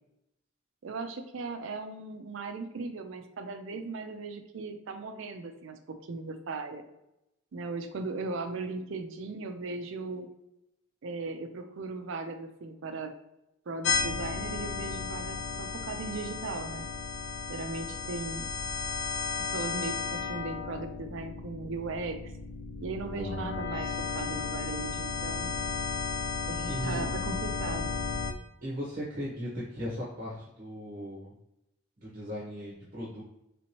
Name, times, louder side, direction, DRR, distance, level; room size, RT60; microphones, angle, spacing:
voice 1, 0.8-6.8 7.5-10.3 11.0-13.1 13.7-16.9 17.5-18.5 19.5-22.3 22.8-25.5 26.4-27.9, right 3 dB, 60° right, 7 dB, 0.4 m, -38 dB
sound 1, 13.8-28.3, left 5 dB, 55° left, 0.4 m, -34 dB
voice 2, 23.1-23.5 26.6-27.1 28.6-31.3 32.0-33.2, equal, 40° right, -5 dB, 0.8 m, -37 dB
3.4 x 2.9 x 2.9 m, 0.88 s
head